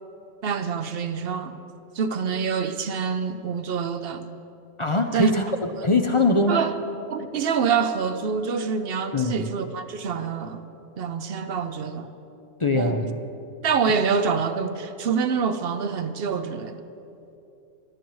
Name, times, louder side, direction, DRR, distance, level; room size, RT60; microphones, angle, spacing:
voice 1, 0.4-1.5 1.9-4.2 5.1-5.3 6.5-6.7 7.1-10.6 11.0-12.1 12.7-13.1 13.6-16.8, right 6 dB, 55° right, 0.8 m, -26 dB
voice 2, 4.8-5.5 5.8-6.7 9.1-9.3 12.6-13.0, left 2 dB, 35° left, 0.5 m, -21 dB
21.0 x 13.0 x 3.1 m
omnidirectional pair, 1.3 m